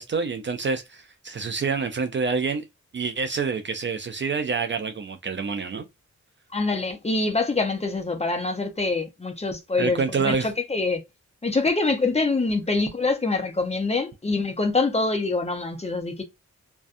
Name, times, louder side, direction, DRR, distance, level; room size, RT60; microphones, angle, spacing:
voice 1, 0.0-2.6 2.9-5.9 9.8-10.5, right 5 dB, 40° right, 0.4 m, -27 dB
voice 2, 6.5-11.0 11.4-16.2, left 3 dB, 20° left, 0.6 m, -25 dB
2.5 x 2.2 x 2.4 m
cardioid pair, 75°, 31 cm